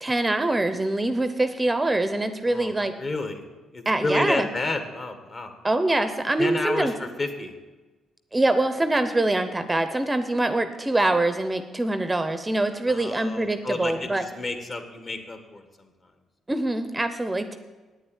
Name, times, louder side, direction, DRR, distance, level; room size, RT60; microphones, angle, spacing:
voice 1, 0.0-2.9 3.9-4.5 5.6-6.9 8.3-14.2 16.5-17.6, right 2 dB, 15° right, 10 dB, 0.7 m, -24 dB
voice 2, 2.5-3.4 3.7-5.5 6.4-7.5 12.9-15.9, left 2 dB, 40° left, 6 dB, 1.6 m, -31 dB
9.0 x 7.8 x 9.1 m, 1.3 s
cardioid pair, 90°, 0 cm